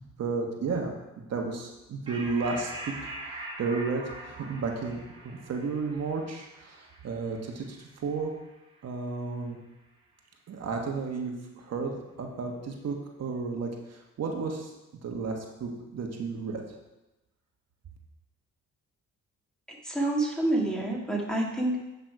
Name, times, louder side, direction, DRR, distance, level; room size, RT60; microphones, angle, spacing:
voice 1, 0.2-2.7 3.0-8.3 8.8-9.6 10.5-14.7 15.0-16.8, right 4 dB, 55° right, 1 dB, 1.3 m, -33 dB
sound 1, 2.1-8.9, right 1 dB, 15° right, 2.3 m, -43 dB
voice 2, 19.8-21.8, right 1 dB, ahead, -2 dB, 2.0 m, -27 dB
9.0 x 5.8 x 4.7 m, 1.0 s
cardioid pair, 90°, 30 cm